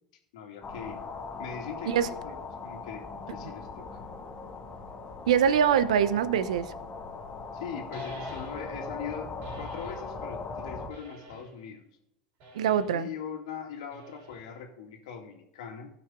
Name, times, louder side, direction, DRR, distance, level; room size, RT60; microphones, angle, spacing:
voice 1, 0.3-1.0 1.4-4.0 7.5-9.3 9.6-11.9 12.9-15.9, left 7 dB, 75° left, 2.3 m, -41 dB
sound 1, 0.6-10.9, left 4 dB, 30° left, 1.8 m, -40 dB
voice 2, 5.3-6.7 12.5-13.1, right 8 dB, 80° right, 0.7 m, -23 dB
sound 2, 7.9-8.8 9.4-10.1 10.9-11.6 12.4-13.0 13.9-14.6, left 1 dB, 55° right, 3.9 m, -46 dB
16.5 x 5.9 x 3.7 m
hypercardioid pair, 80°, 4 cm